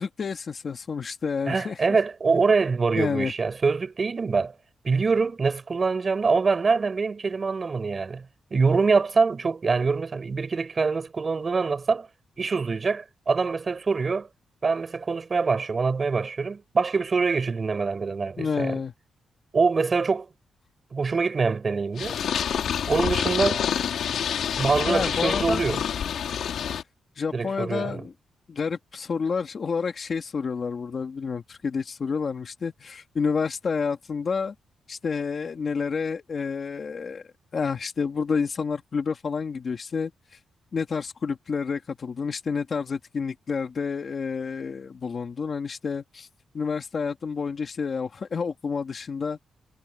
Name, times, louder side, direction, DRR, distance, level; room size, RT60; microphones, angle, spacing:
voice 1, 0.0-1.8 2.3-2.5 3.0-3.3 18.4-18.9 24.9-25.6 27.2-28.1 28.5-34.5 34.9-37.2 37.5-40.1 40.7-46.3 46.5-49.4, left 5 dB, 40° left, 2.3 m, -29 dB
voice 2, 1.5-4.5 4.8-8.2 8.5-12.1 12.4-14.3 14.6-18.7 19.5-20.3 20.9-22.2 22.9-23.6 24.6-25.8 27.3-28.0, right 4 dB, 30° right, 4.6 m, -24 dB
Purr, 22.0-26.8, left 8 dB, 65° left, 4.5 m, -27 dB
wide cardioid pair, 160°, 0 cm